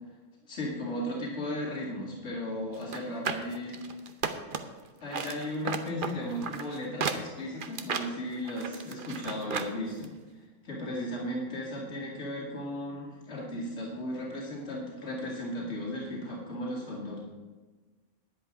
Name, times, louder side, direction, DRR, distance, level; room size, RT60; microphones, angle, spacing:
voice 1, 0.5-3.7 5.0-10.1 10.6-17.2, left 1 dB, 65° left, -4 dB, 2.7 m, -35 dB
sound 1, 2.8-4.8 5.1-9.7 10.0-10.1, right 5 dB, 50° right, 0.9 m, -34 dB
10.5 x 10.0 x 5.0 m, 1.3 s
omnidirectional pair, 1.3 m